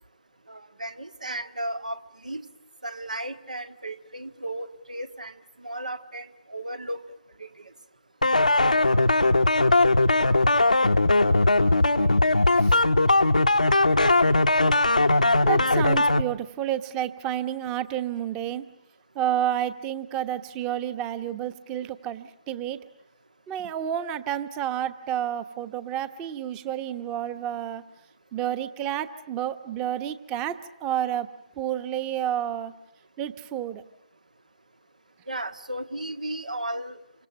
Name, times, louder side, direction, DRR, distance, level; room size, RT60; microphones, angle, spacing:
voice 1, 0.5-2.4 2.8-7.0 7.4-7.7 35.3-37.0, right 1 dB, 75° right, 9 dB, 1.7 m, -35 dB
sound 1, 8.2-16.2, left 2 dB, 80° left, 1.0 m, -20 dB
voice 2, 15.4-18.6 19.1-22.8 23.5-27.8 28.3-31.3 31.6-32.7 33.2-33.8, right 10 dB, 20° right, 13 dB, 1.1 m, -30 dB
28.0 x 25.0 x 7.7 m, 0.80 s
figure-of-eight pair, 140°, 4 cm